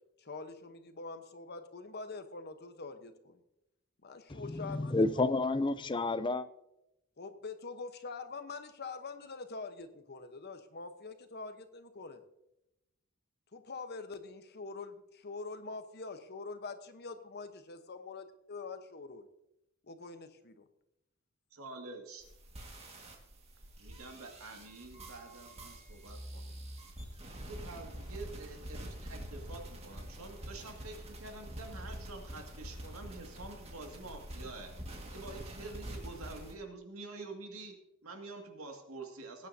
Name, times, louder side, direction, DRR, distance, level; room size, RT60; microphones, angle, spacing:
voice 1, 0.2-3.4 4.0-5.0 7.2-12.2 13.5-19.3 19.8-20.7, left 4 dB, 50° left, 1.0 m, -45 dB
voice 2, 4.3-6.5, left 2 dB, 20° left, 0.5 m, -30 dB
voice 3, 21.5-22.3 23.8-26.6 27.4-34.7 35.1-37.8 38.0-39.5, right 3 dB, 80° right, 2.2 m, -47 dB
sound 1, 22.2-36.5, equal, 30° right, 1.9 m, -46 dB
19.5 x 9.6 x 2.8 m
head